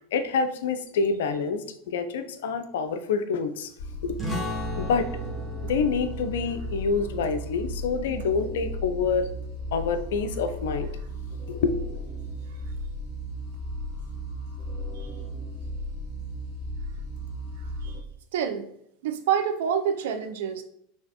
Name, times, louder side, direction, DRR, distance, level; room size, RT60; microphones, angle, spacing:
voice 1, 0.0-3.7 4.0-5.1 5.6-9.3 9.7-10.9 11.5-11.8, left 5 dB, 60° left, 9 dB, 0.3 m, -27 dB
sound 1, 3.8-18.0, equal, 45° left, 0.9 m, -35 dB
sound 2, 4.2-9.4, left 1 dB, ahead, 1.3 m, -38 dB
voice 2, 18.3-18.7 19.0-20.6, right 8 dB, 60° right, 8 dB, 0.4 m, -27 dB
3.8 x 2.8 x 2.8 m, 0.70 s
figure-of-eight pair, 80°, 0 cm